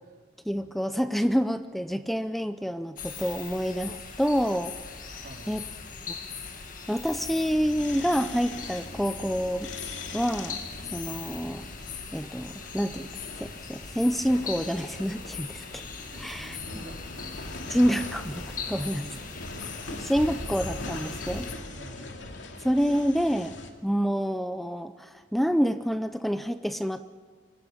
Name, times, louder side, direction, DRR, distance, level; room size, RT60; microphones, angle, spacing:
voice 1, 0.5-4.7 5.1-5.6 6.9-9.7 10.1-10.6 10.9-11.6 12.1-13.1 13.4-15.8 16.2-16.6 17.7-19.0 20.0-21.5 22.6-23.6 23.8-27.1, equal, ahead, 10 dB, 0.5 m, -27 dB
sound 1, 3.0-21.5, left 5 dB, 45° left, 1.9 m, -40 dB
voice 2, 5.2-5.6 16.1-17.4 17.6-17.8 18.9-19.2 21.7-22.2, right 1 dB, 55° right, 0 dB, 3.8 m, -47 dB
sound 2, 7.1-23.7, left 2 dB, 80° left, 2.5 m, -41 dB
25.5 x 15.5 x 8.6 m, 1.5 s
head